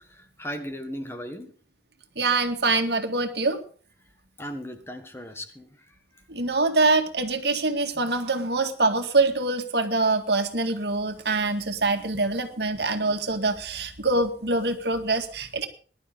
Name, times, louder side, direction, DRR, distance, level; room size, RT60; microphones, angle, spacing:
voice 1, 0.4-1.5 4.4-5.7, equal, 15° left, 6 dB, 1.7 m, -36 dB
voice 2, 2.2-3.6 6.3-15.7, right 3 dB, 70° right, 6 dB, 2.1 m, -24 dB
20.5 x 12.0 x 3.8 m, 0.42 s
head